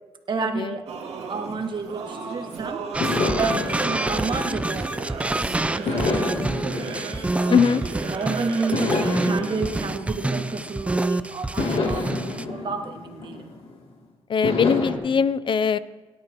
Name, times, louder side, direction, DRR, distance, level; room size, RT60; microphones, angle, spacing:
voice 1, 0.3-0.8 1.3-2.8 3.4-4.9 5.4-6.8 7.4-7.7 8.0-13.5, right 4 dB, 50° right, 4 dB, 1.5 m, -30 dB
Singing / Musical instrument, 0.9-9.7, right 5 dB, 80° right, 2.1 m, -35 dB
sound 1, 2.0-2.4 3.0-5.3 5.9-8.1 8.7-11.0 11.6-13.8 14.4-14.9, left 3 dB, 70° left, 2.7 m, -29 dB
sound 2, 2.9-12.4, right 2 dB, 10° right, 0.5 m, -27 dB
voice 2, 7.5-7.8 14.3-15.8, left 6 dB, 55° left, 16 dB, 0.6 m, -20 dB
22.5 x 12.0 x 3.0 m, 1.3 s
cardioid pair, 85°, 10 cm